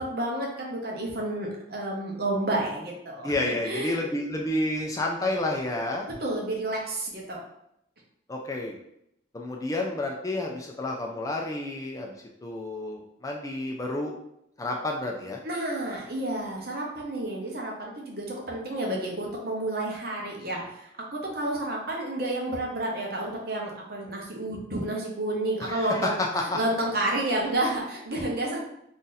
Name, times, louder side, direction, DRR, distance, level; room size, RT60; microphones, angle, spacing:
voice 1, 0.0-4.0 6.1-7.4 15.4-26.1 26.4-28.6, right 1 dB, 55° right, -1 dB, 0.8 m, -30 dB
voice 2, 3.2-6.1 8.3-8.8 9.3-12.1 12.4-14.1 14.6-15.4 25.7-26.6, left 2 dB, 15° left, 0 dB, 0.3 m, -30 dB
2.7 x 2.5 x 3.9 m, 0.77 s
head